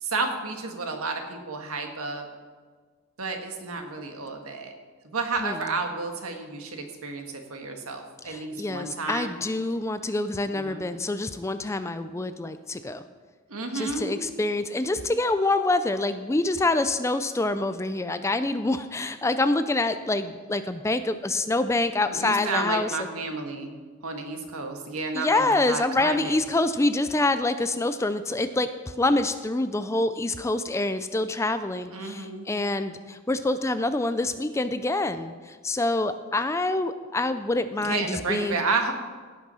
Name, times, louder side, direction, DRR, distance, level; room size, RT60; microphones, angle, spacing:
voice 1, 0.0-2.3 3.2-4.7 5.0-9.3 10.5-10.8 13.5-14.1 22.1-23.7 24.0-26.3 31.9-32.5 37.8-38.9, right 3 dB, 80° right, 4 dB, 1.6 m, -31 dB
voice 2, 5.4-5.7 8.2-13.0 13.7-23.1 25.1-38.6, left 2 dB, 15° left, 11 dB, 0.3 m, -26 dB
17.0 x 6.1 x 5.6 m, 1.5 s
head